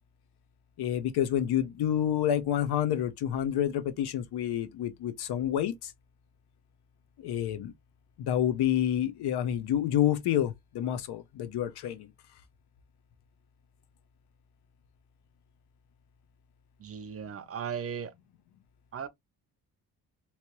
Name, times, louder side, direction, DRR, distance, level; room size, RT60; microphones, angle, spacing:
voice 1, 0.8-5.9 7.2-7.7 8.2-12.1, left 11 dB, 80° left, 0.8 m, -28 dB
voice 2, 16.8-18.1 18.9-19.1, right 7 dB, 40° right, 0.5 m, -37 dB
3.1 x 2.8 x 2.9 m
cardioid pair, 120°, 39 cm